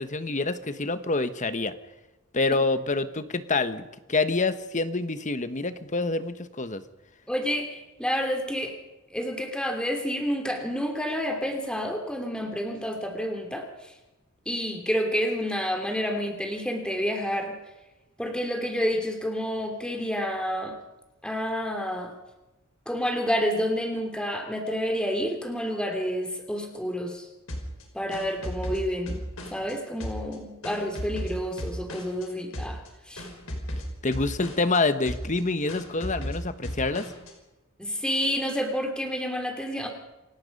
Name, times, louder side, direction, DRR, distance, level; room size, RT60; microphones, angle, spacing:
voice 1, 0.0-1.7 2.3-3.8 4.1-6.8 34.0-37.1, left 3 dB, 35° left, 11 dB, 1.2 m, -27 dB
voice 2, 7.3-8.7 9.1-13.7 14.5-17.5 18.2-20.8 21.2-22.1 22.9-27.3 27.9-29.2 29.5-32.8 33.1-33.3 37.8-39.9, equal, 5° left, 4 dB, 2.9 m, -29 dB
sound 1, 27.5-29.7 30.0-32.3 32.5-32.9 33.2-34.8 35.1-35.4 35.7-37.3, equal, 70° left, 5.1 m, -35 dB
28.0 x 17.5 x 5.4 m, 1.0 s
head